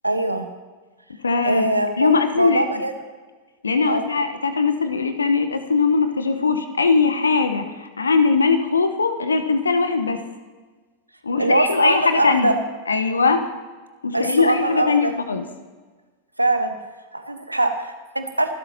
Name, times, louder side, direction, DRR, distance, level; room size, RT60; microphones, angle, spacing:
voice 1, 0.0-0.5 1.4-2.9 3.9-4.1 11.4-12.5 14.1-15.1 16.4-16.7 17.1-18.5, right 2 dB, 85° right, 7 dB, 1.3 m, -22 dB
voice 2, 1.2-1.7 2.0-2.8 3.6-10.2 11.2-12.5 12.9-13.5 14.0-15.5, left 4 dB, 75° left, 8 dB, 1.2 m, -20 dB
25.5 x 12.5 x 3.0 m, 1.4 s
figure-of-eight pair, 90°, 0 cm